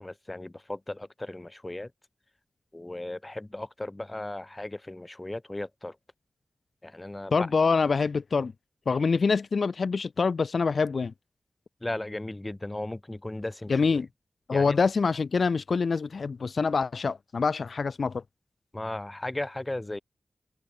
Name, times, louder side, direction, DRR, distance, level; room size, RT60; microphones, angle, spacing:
voice 1, 0.0-1.9 2.7-6.0 6.8-7.3 11.8-14.1 14.5-14.8 18.7-20.0, left 1 dB, 20° left, 0.6 m, -36 dB
voice 2, 7.3-8.5 8.9-11.1 13.7-14.1 14.5-18.2, left 4 dB, 65° left, 0.4 m, -25 dB
open air
wide cardioid pair, 110°, 0 cm